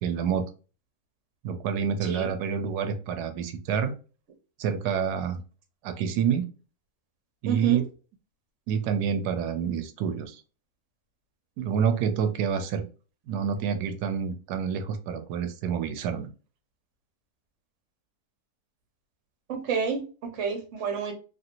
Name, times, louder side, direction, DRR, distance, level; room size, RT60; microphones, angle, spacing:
voice 1, 0.0-0.5 1.4-3.9 4.6-5.4 5.8-6.5 7.4-7.9 8.7-10.4 11.6-12.9 13.3-16.3, right 7 dB, 90° right, 9 dB, 1.1 m, -28 dB
voice 2, 7.5-7.8 19.5-21.1, right 6 dB, 55° right, 4 dB, 1.2 m, -30 dB
3.0 x 2.8 x 2.5 m, 0.35 s
omnidirectional pair, 1.6 m